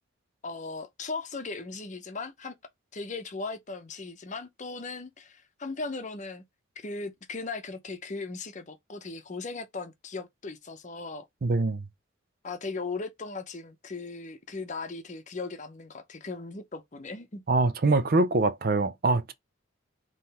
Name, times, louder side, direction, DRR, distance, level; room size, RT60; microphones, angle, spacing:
voice 1, 0.4-2.5 2.9-6.4 6.8-11.3 12.4-17.4, left 3 dB, 40° left, 0.7 m, -38 dB
voice 2, 11.4-11.8 17.5-19.3, right 3 dB, 50° right, 0.5 m, -24 dB
3.8 x 3.1 x 4.2 m
head